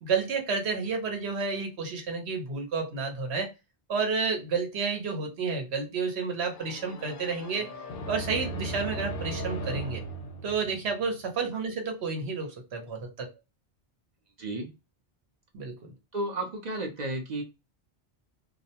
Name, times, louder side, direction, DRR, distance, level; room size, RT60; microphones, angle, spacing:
voice 1, 0.0-3.5 3.9-7.7 8.1-10.0 10.4-13.3 15.5-15.9, right 4 dB, 75° right, 1.0 m, -30 dB
sound 1, 6.5-11.3, right 1 dB, 60° left, 0.7 m, -37 dB
voice 2, 14.4-14.7 16.1-17.4, right 1 dB, 50° right, 0.6 m, -32 dB
2.3 x 2.1 x 2.7 m
omnidirectional pair, 1.1 m